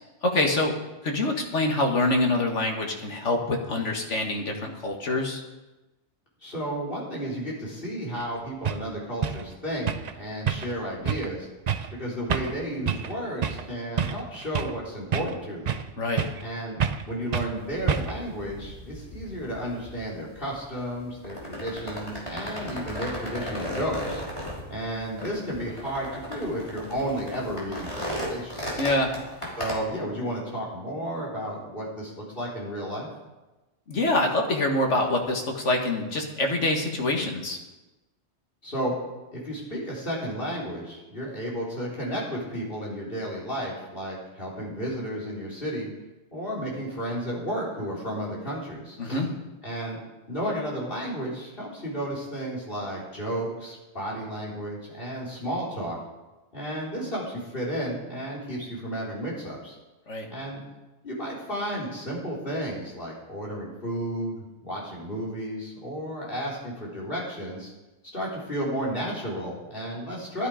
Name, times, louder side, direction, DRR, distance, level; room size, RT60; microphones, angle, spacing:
voice 1, 0.2-0.7 1.0-5.4 16.0-16.2 28.7-29.1 33.9-37.6 49.0-49.3 60.1-60.3, left 2 dB, 80° left, 2 dB, 1.9 m, -25 dB
voice 2, 6.4-9.9 10.1-11.5 11.9-15.8 16.4-24.2 24.7-28.8 29.6-33.1 38.6-38.9 39.3-45.9 46.3-49.2 49.6-50.0 50.3-56.0 56.5-59.7 60.3-60.6 61.0-67.7 68.1-70.5, equal, 50° left, -4 dB, 4.0 m, -32 dB
sound 1, 8.2-8.3 8.6-8.8 9.2-9.4 9.9-10.1 10.5-10.8 11.0-11.3 11.7-11.9 12.3-12.6 12.9-13.1 13.4-13.7 14.0-14.8 15.1-15.9 16.2-16.5 16.8-17.1 17.3-17.5 17.9-18.3, right 7 dB, 45° right, 0.5 m, -28 dB
sound 2, 17.5-29.8, equal, 25° left, 3.1 m, -36 dB
12.5 x 11.0 x 5.0 m, 1.1 s
omnidirectional pair, 1.2 m